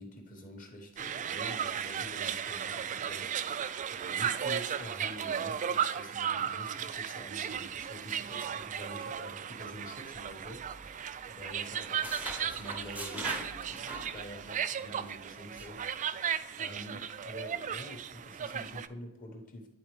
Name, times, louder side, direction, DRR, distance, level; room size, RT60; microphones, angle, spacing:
voice 1, 0.0-16.1 16.6-19.7, equal, 40° left, 1.4 m, -47 dB
sound 1, 1.0-18.9, right 8 dB, 35° right, 0.3 m, -35 dB
sound 2, 10.5-11.3 11.6-14.6 14.9-15.1 15.6-15.8, right 1 dB, 5° right, 0.7 m, -43 dB
10.5 x 4.2 x 3.3 m
head